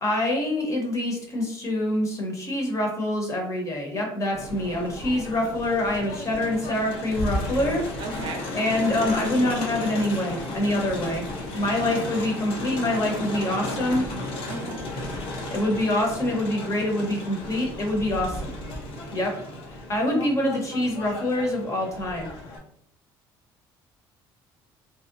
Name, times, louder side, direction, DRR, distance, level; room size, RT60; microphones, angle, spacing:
voice 1, 0.0-7.8 8.5-11.2 11.5-14.0 15.5-18.5 19.1-19.3 19.9-22.3, left 1 dB, 35° left, 0 dB, 0.8 m, -25 dB
Crowd, 4.3-22.6, left 2 dB, 65° left, 0.6 m, -34 dB
voice 2, 8.0-8.5 12.0-12.2 14.5-14.9, right 3 dB, 55° right, 3 dB, 0.5 m, -35 dB
2.7 x 2.0 x 2.4 m, 0.71 s
cardioid pair, 105°, 10 cm